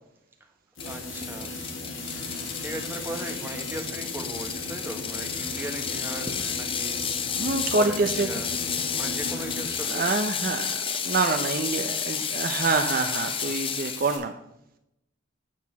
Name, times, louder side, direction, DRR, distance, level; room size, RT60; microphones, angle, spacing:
sound 1, 0.8-14.2, left 5 dB, 85° left, 2.4 m, -39 dB
sound 2, 0.8-9.7, left 1 dB, 60° left, 1.4 m, -39 dB
Ratchet pawl, 0.8-14.0, left 7 dB, 25° left, 0.6 m, -32 dB
voice 1, 0.8-1.6 2.0-2.1 2.6-8.6 8.9-10.1, right 1 dB, 10° right, 3 dB, 1.1 m, -38 dB
voice 2, 7.4-8.3 9.9-14.4, right 3 dB, 45° right, 6 dB, 0.6 m, -26 dB
9.3 x 4.7 x 6.9 m, 0.83 s
head